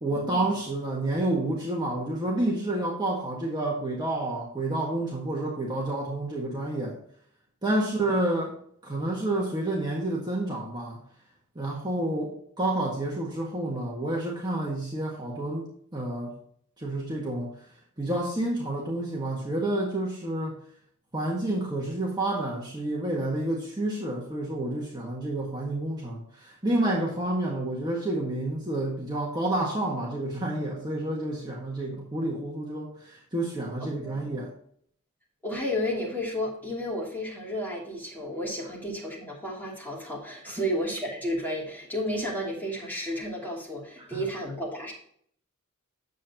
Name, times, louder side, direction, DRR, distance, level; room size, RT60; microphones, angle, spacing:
voice 1, 0.0-7.0 7.6-8.6 8.8-11.0 11.5-16.3 16.8-17.5 18.0-20.5 21.1-34.5 40.5-40.6 44.0-44.2, right 1 dB, 20° right, -3 dB, 1.6 m, -29 dB
voice 2, 33.8-34.3 35.4-44.9, equal, 10° left, -4 dB, 2.9 m, -32 dB
9.4 x 7.5 x 3.0 m, 0.62 s
head